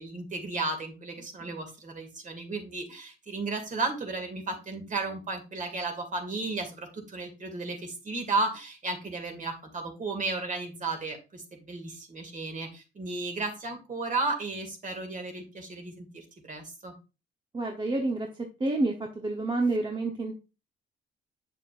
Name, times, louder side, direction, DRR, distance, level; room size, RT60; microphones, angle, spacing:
voice 1, 0.0-16.9, right 3 dB, 40° right, 4 dB, 2.2 m, -34 dB
voice 2, 17.5-20.3, right 2 dB, 25° right, 2 dB, 1.0 m, -29 dB
7.5 x 6.6 x 2.5 m, 0.30 s
cardioid pair, 90°, 20 cm